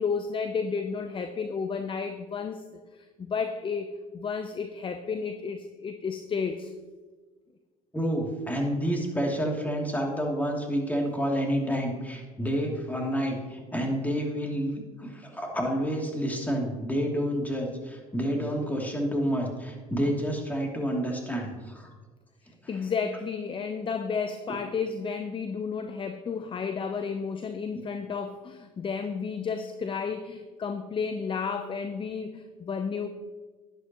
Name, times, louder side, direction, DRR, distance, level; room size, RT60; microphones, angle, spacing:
voice 1, 0.0-2.6 2.9-6.7 22.7-33.1, left 5 dB, 30° left, 8 dB, 0.7 m, -32 dB
voice 2, 7.9-21.9, equal, 10° left, -1 dB, 2.9 m, -29 dB
11.5 x 10.5 x 3.1 m, 1.4 s
hypercardioid pair, 75°, 17 cm